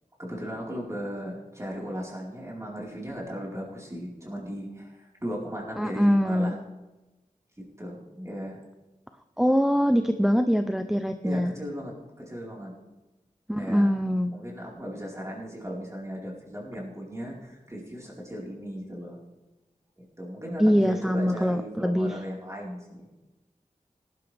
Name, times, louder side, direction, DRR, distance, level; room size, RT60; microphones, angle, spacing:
voice 1, 0.2-6.6 7.8-8.6 11.2-12.7 13.5-14.0 14.3-19.2 20.0-23.1, equal, 20° right, -3 dB, 4.5 m, -37 dB
voice 2, 5.8-6.6 9.4-11.6 13.5-14.4 20.6-22.2, equal, 5° right, 7 dB, 0.6 m, -23 dB
18.0 x 12.0 x 3.5 m, 1.1 s
wide cardioid pair, 65°, 14 cm